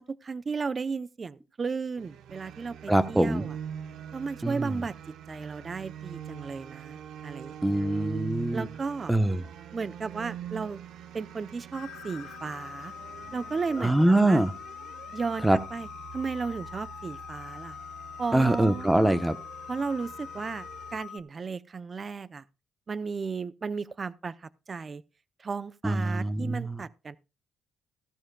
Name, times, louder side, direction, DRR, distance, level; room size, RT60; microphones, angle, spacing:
voice 1, 0.0-3.5 4.1-4.9 5.3-7.5 8.5-9.1 9.7-10.8 11.1-12.9 13.3-14.4 15.1-17.8 18.2-19.2 19.7-22.4 22.9-25.0 25.4-27.2, right 4 dB, 35° right, 0.5 m, -34 dB
sound 1, 2.0-21.0, right 9 dB, 80° right, 1.0 m, -44 dB
voice 2, 2.9-3.4 4.4-4.8 7.6-8.7 9.1-9.4 13.8-14.5 15.4-15.6 18.3-19.4 25.8-26.8, right 1 dB, 10° right, 0.9 m, -24 dB
sound 2, 11.7-21.2, left 9 dB, 85° left, 1.0 m, -43 dB
15.0 x 12.5 x 2.2 m
cardioid pair, 90°, 0 cm